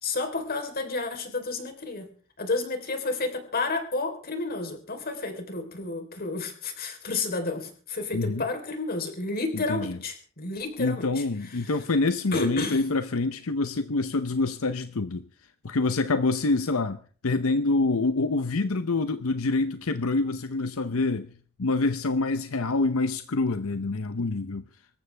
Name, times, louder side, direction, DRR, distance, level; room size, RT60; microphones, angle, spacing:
voice 1, 0.0-2.1 2.4-11.7 12.3-12.8, left 3 dB, 45° left, 3.8 m, -31 dB
voice 2, 8.1-8.4 9.5-10.0 10.8-15.2 15.6-17.0 17.2-21.3 21.6-24.6, left 3 dB, 85° left, 0.8 m, -26 dB
25.5 x 14.0 x 3.4 m
head